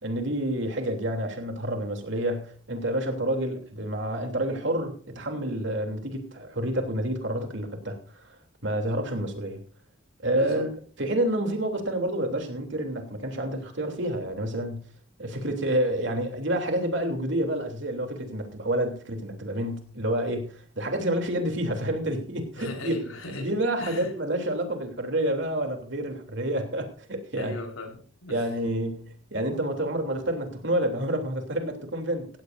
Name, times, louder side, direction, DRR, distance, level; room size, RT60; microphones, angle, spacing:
voice 1, 0.0-8.3 8.6-9.6 10.2-10.7 11.0-14.9 15.2-23.0 23.4-27.5 28.3-32.3, right 1 dB, 60° right, 4 dB, 3.1 m, -29 dB
voice 2, 10.3-10.6 22.6-24.1 27.3-28.5, left 2 dB, 90° left, 2 dB, 4.5 m, -38 dB
17.0 x 15.5 x 2.6 m, 0.42 s
head